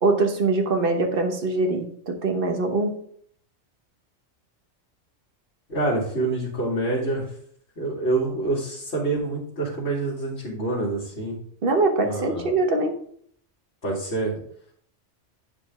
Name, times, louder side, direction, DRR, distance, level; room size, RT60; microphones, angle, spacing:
voice 1, 0.0-2.9 11.6-12.9, right 3 dB, 50° right, 4 dB, 1.3 m, -23 dB
voice 2, 5.7-7.2 7.8-11.4 12.0-12.5 13.8-14.3, right 2 dB, 60° left, -8 dB, 2.4 m, -26 dB
9.5 x 5.0 x 3.6 m, 0.63 s
omnidirectional pair, 1.3 m